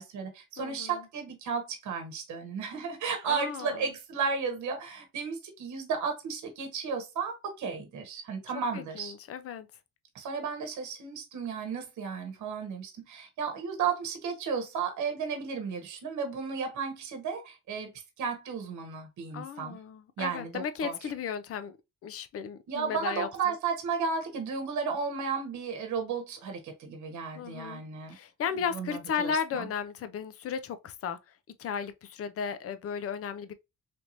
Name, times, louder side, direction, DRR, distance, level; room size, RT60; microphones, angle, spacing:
voice 1, 0.0-9.1 10.1-17.9 18.2-19.8 20.2-21.0 22.7-28.2 28.7-29.7, right 5 dB, 70° right, 1.0 m, -34 dB
voice 2, 0.6-1.0 3.2-3.8 8.7-9.7 19.3-21.8 22.0-23.5 27.3-27.8 28.1-31.3 31.6-33.5, left 7 dB, 50° left, 0.5 m, -35 dB
3.4 x 2.9 x 2.5 m
cardioid pair, 90°, 30 cm